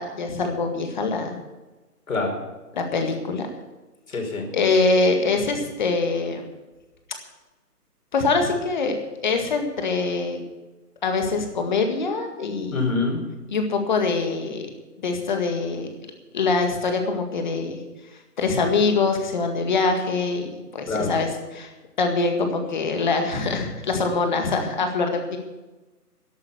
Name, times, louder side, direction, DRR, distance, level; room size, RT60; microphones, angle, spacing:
voice 1, 0.0-1.4 2.7-3.5 4.5-6.4 8.1-10.4 11.0-12.8 13.5-14.7 15.0-15.9 16.3-17.8 18.4-21.7 22.0-25.4, left 3 dB, 30° left, 5 dB, 1.9 m, -24 dB
voice 2, 2.1-2.4 4.1-4.5 12.7-13.3 20.9-21.1, left 3 dB, 55° left, 2 dB, 4.9 m, -25 dB
12.5 x 11.5 x 6.9 m, 1.1 s
hypercardioid pair, 165°, 47 cm